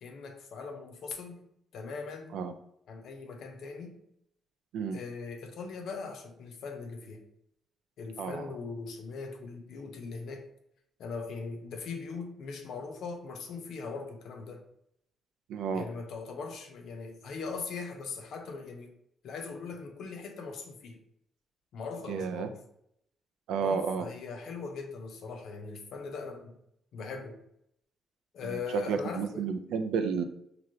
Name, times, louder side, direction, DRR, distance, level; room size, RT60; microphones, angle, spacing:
voice 1, 0.0-2.4 2.9-4.0 4.9-7.2 8.0-10.5 11.0-14.6 15.7-18.9 19.2-21.0 21.7-22.6 23.6-26.6 26.9-27.4 28.3-29.5, left 4 dB, 70° left, 0.6 m, -40 dB
voice 2, 15.5-15.9 22.1-22.5 23.5-24.1 28.4-30.2, right 6 dB, 85° right, 0.3 m, -31 dB
3.1 x 2.6 x 2.6 m
cardioid pair, 90°, 0 cm